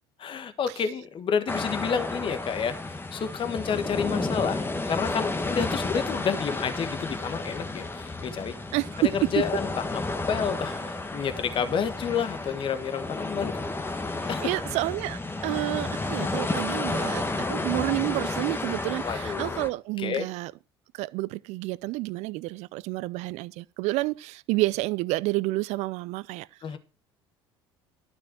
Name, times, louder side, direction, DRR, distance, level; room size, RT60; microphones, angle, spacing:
voice 1, 0.2-8.5 9.1-10.0 10.3-13.6 13.9-14.5 19.0-19.6 20.0-20.3 26.6-26.8, left 7 dB, 40° left, 1.4 m, -30 dB
sound 1, 1.5-19.7, left 2 dB, 15° left, 1.5 m, -32 dB
voice 2, 14.2-20.5 20.9-26.5, right 20 dB, 60° right, 0.5 m, -30 dB
12.0 x 6.2 x 6.1 m
hypercardioid pair, 65°, 13 cm